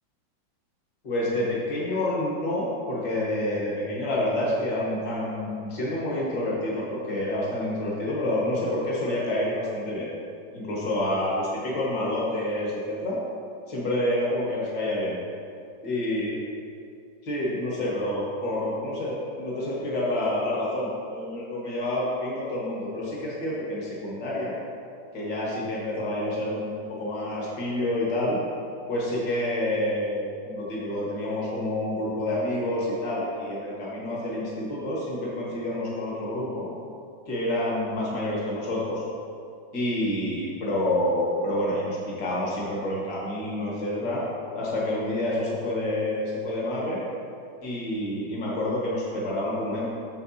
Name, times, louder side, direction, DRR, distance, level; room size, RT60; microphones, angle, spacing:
voice 1, 1.0-10.1 10.5-13.2 13.7-15.2 15.8-16.4 17.2-24.5 25.1-28.4 28.9-36.7 37.3-39.0 39.7-44.2 44.6-47.0 47.6-49.9, left 1 dB, 60° left, -6 dB, 2.2 m, -28 dB
8.9 x 7.0 x 2.8 m, 2.5 s
omnidirectional pair, 2.1 m